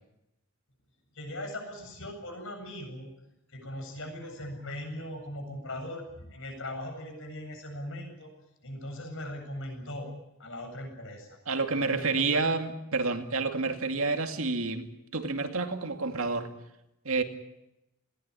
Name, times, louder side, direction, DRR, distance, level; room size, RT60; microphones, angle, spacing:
voice 1, 1.1-3.1 3.5-8.3 8.6-10.1 10.4-11.4 11.9-12.4, left 1 dB, 60° left, 4 dB, 8.0 m, -39 dB
voice 2, 11.5-14.9 15.1-16.5 17.0-17.2, right 3 dB, 65° right, 6 dB, 2.4 m, -29 dB
21.0 x 18.5 x 9.9 m, 0.89 s
head